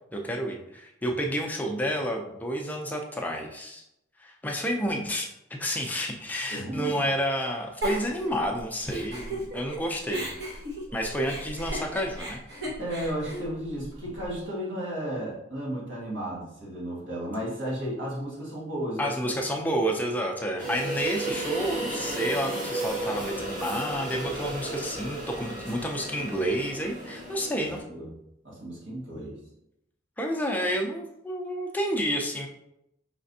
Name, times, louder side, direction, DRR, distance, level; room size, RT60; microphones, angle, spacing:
voice 1, 0.1-3.8 4.2-5.3 5.6-10.3 10.9-12.4 19.0-28.0 30.2-32.5, equal, 10° left, 1 dB, 0.4 m, -30 dB
voice 2, 6.5-7.0 12.8-19.3 27.6-28.1 28.4-29.3, right 1 dB, 85° right, -5 dB, 1.6 m, -34 dB
Giggle, 7.8-9.8 10.1-14.3, right 1 dB, 65° right, 1.2 m, -35 dB
sound 1, 20.6-27.8, right 2 dB, 45° right, 1.4 m, -34 dB
5.0 x 3.3 x 2.6 m, 0.83 s
head